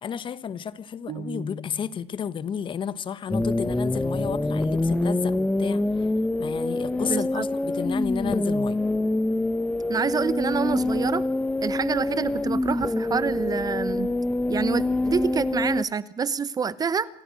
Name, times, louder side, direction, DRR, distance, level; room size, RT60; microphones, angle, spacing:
voice 1, 0.0-5.8 6.4-8.8, left 8 dB, 40° left, 1.3 m, -32 dB
sound 1, 1.1-2.1, right 2 dB, 50° right, 6.8 m, -37 dB
sound 2, 3.3-15.8, left 2 dB, 10° left, 0.7 m, -25 dB
voice 2, 7.0-7.5 9.9-11.2 11.6-14.1 14.5-17.1, right 6 dB, 30° right, 1.0 m, -27 dB
27.0 x 15.5 x 6.5 m
supercardioid pair, 90°, 13 cm